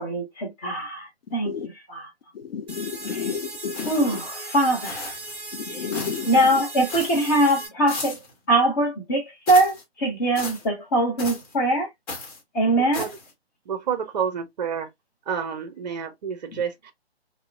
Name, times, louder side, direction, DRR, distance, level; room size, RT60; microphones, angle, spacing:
voice 1, 0.0-1.5 1.9-2.1 3.1-3.2 3.9-5.1 5.7-5.9 6.3-8.2 8.5-11.9 12.5-13.1, right 1 dB, 15° left, 0.7 m, -22 dB
voice 2, 2.3-4.2 5.5-6.6 16.5-16.6, left 7 dB, 65° left, 0.5 m, -32 dB
sound 1, 2.7-7.7, right 2 dB, 15° right, 1.2 m, -37 dB
sound 2, 3.7-4.3 4.8-5.4 5.9-6.3 6.9-7.3 7.9-8.3 9.5-9.8 10.4-10.7 11.2-11.5 12.1-12.4 12.9-13.3, left 3 dB, 35° left, 1.0 m, -36 dB
voice 3, 12.8-13.1 13.7-14.9 15.3-16.9, right 7 dB, 40° right, 0.6 m, -29 dB
2.8 x 2.0 x 2.3 m
figure-of-eight pair, 140°, 32 cm